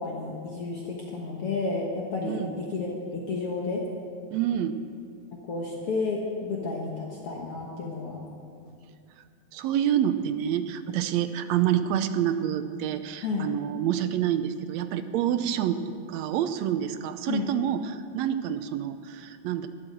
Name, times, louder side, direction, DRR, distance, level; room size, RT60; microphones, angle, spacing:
voice 1, 0.0-3.8 5.5-8.2 13.2-13.5 17.3-17.5, left 3 dB, 55° left, -2 dB, 2.0 m, -31 dB
voice 2, 4.3-4.8 9.5-15.8 16.1-19.7, right 10 dB, 80° right, 10 dB, 1.7 m, -27 dB
12.5 x 11.5 x 7.7 m, 2.3 s
omnidirectional pair, 3.5 m